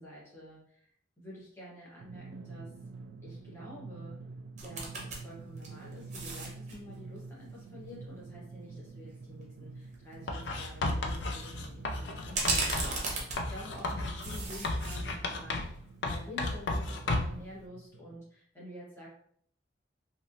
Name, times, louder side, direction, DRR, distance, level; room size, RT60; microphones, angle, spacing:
voice 1, 0.0-2.7 3.2-4.2 4.6-19.1, equal, 15° left, -7 dB, 1.0 m, -49 dB
Drum, 2.0-18.2, right 3 dB, 70° right, 0.3 m, -48 dB
sound 1, 4.6-5.2 5.6-6.8 9.4-9.5 9.9-10.1 12.3-13.9 14.2-15.0 15.4-15.5, right 3 dB, 40° right, 0.7 m, -34 dB
Writing, 10.3-13.0 13.4-15.8 16.0-17.4, left 2 dB, 70° left, 0.4 m, -33 dB
3.0 x 2.7 x 2.6 m, 0.63 s
head